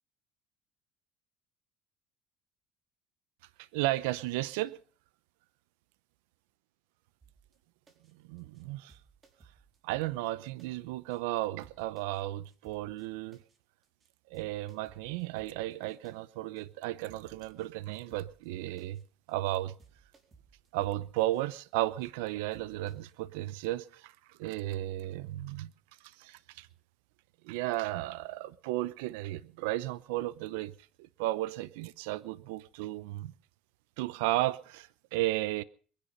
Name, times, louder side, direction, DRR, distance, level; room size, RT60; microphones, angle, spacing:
voice 1, 3.7-4.8 8.3-9.0 9.8-13.4 14.3-19.0 19.3-19.7 20.7-25.7 26.2-26.7 27.4-30.7 31.0-33.3 34.0-35.6, right 16 dB, 85° right, 0.8 m, -34 dB
sound 1, 7.2-7.6 7.9-8.1 8.4-8.6 8.9-10.7 11.1-11.2 11.6-12.2 12.5-13.1 13.3-13.6 13.8-14.1 14.3-16.1 16.6-16.7 17.1-17.7 17.9-18.5 18.8-19.0 19.3-19.5 19.8-21.6 22.0-22.1 22.5-23.1, right 5 dB, 30° right, 4.2 m, -62 dB
22.0 x 10.5 x 5.5 m
supercardioid pair, 95°, 0 cm